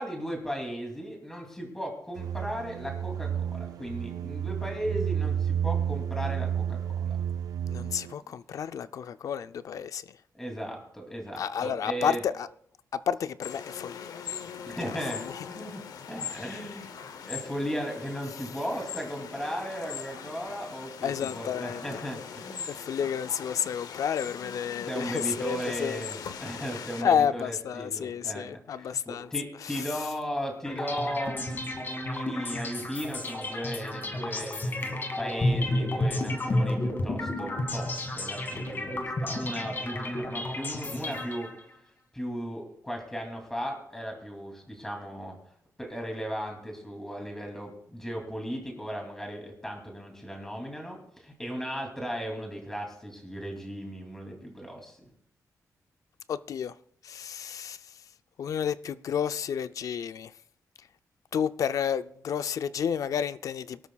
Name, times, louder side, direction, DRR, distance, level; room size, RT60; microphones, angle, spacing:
voice 1, 0.0-7.2 10.3-12.2 14.7-15.8 16.1-16.9 17.3-22.9 24.9-41.5 42.1-45.4 45.8-55.0, equal, 5° left, 2.7 m, -36 dB
sound 1, 2.2-8.1, right 9 dB, 80° right, 0.4 m, -31 dB
voice 2, 7.7-10.2 11.4-12.5 12.9-14.1 15.1-15.3 16.3-16.6 21.0-22.0 22.7-26.0 27.0-29.3 29.6-29.8 56.3-56.8 57.0-57.8 58.4-60.3 61.3-63.9, left 8 dB, 65° left, 0.4 m, -31 dB
sound 2, 13.4-27.0, left 7 dB, 85° left, 0.8 m, -41 dB
sound 3, 30.6-41.7, left 1 dB, 35° left, 1.9 m, -31 dB
23.5 x 12.5 x 2.3 m
wide cardioid pair, 170°, 6 cm